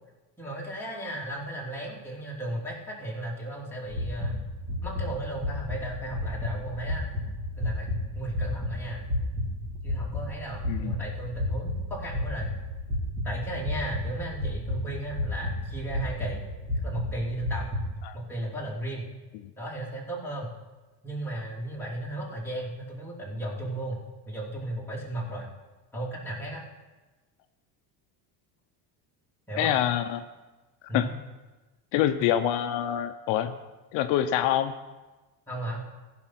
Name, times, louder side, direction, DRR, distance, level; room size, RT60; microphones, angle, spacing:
voice 1, 0.4-4.4 4.8-7.1 7.6-9.0 9.8-12.5 13.2-16.4 16.8-17.6 18.1-19.1 19.6-20.5 21.0-24.0 24.2-25.5 25.9-26.6 29.5-29.7 30.9-31.1 35.5-35.8, right 1 dB, 5° left, -5 dB, 3.1 m, -35 dB
sound 1, 3.9-17.9, left 1 dB, 20° right, 3.8 m, -32 dB
voice 2, 29.6-30.2 30.9-31.1 31.9-33.5 33.9-34.7, left 11 dB, 75° left, 8 dB, 0.8 m, -25 dB
15.0 x 5.9 x 5.9 m, 1.2 s
cardioid pair, 120°, 44 cm